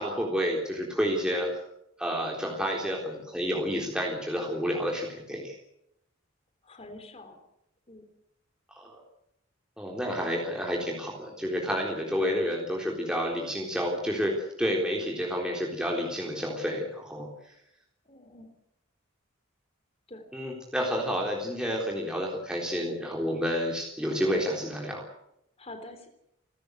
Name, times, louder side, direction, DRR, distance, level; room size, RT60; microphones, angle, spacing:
voice 1, 0.0-1.5 2.0-5.5 8.7-9.0 9.8-17.3 20.3-25.1, equal, 5° right, -1 dB, 3.7 m, -30 dB
voice 2, 6.6-7.4 7.9-8.0 18.1-18.5 20.1-20.2 25.6-26.1, left 2 dB, 30° left, 7 dB, 3.5 m, -45 dB
29.5 x 14.0 x 8.0 m, 0.80 s
head